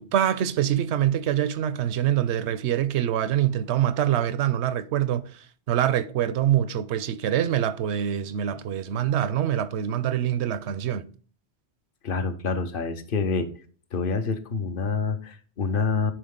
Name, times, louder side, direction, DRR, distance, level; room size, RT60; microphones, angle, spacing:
voice 1, 0.0-5.3 5.7-11.1, right 11 dB, 80° right, 0.9 m, -25 dB
voice 2, 12.0-13.5 13.9-16.1, left 4 dB, 55° left, 0.9 m, -27 dB
10.0 x 4.5 x 3.7 m
omnidirectional pair, 1.1 m